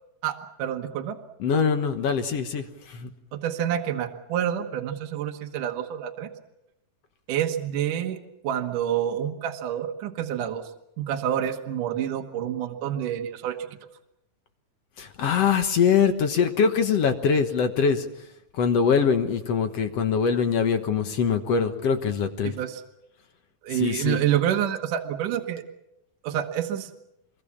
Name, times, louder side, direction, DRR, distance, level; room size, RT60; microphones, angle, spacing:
voice 1, 0.2-1.2 3.3-6.3 7.3-8.2 8.4-10.6 11.0-13.6 22.4-22.8 23.6-25.6 26.2-26.9, right 10 dB, 70° right, 4 dB, 2.8 m, -28 dB
voice 2, 1.4-3.1 15.0-18.1 18.5-22.5 23.7-24.2, left 6 dB, 60° left, 7 dB, 2.0 m, -23 dB
25.0 x 22.5 x 7.3 m, 0.85 s
omnidirectional pair, 3.9 m